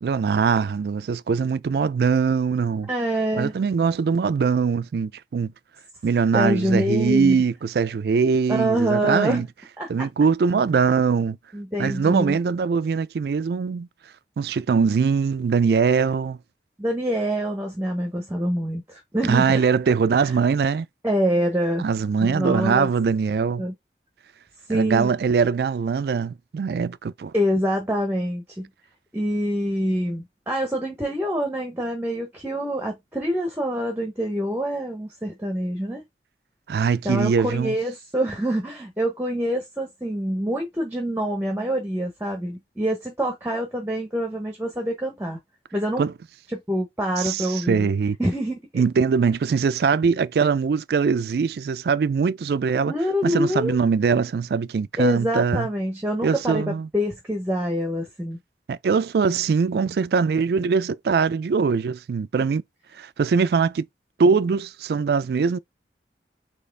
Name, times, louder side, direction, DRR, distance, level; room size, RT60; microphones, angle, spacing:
voice 1, 0.0-2.9 3.4-5.5 6.0-9.5 9.9-11.4 11.8-13.9 14.4-16.4 19.3-20.9 21.8-23.6 24.7-27.3 36.7-37.7 46.0-46.1 47.2-48.2 48.7-52.9 53.2-55.7 56.2-56.9 58.7-62.6 63.0-63.9 64.2-65.6, right 5 dB, 60° right, 0.3 m, -22 dB
voice 2, 2.9-3.5 6.3-7.4 8.5-9.4 9.8-10.1 11.5-12.4 16.8-19.6 20.2-20.4 21.0-21.8 22.2-22.9 23.6-23.7 24.7-25.1 27.3-28.7 29.1-36.0 37.0-45.4 45.7-46.1 46.5-47.9 48.2-48.8 52.9-53.8 55.0-56.6 56.9-58.4, equal, 10° right, 0.8 m, -25 dB
4.1 x 2.9 x 3.3 m
head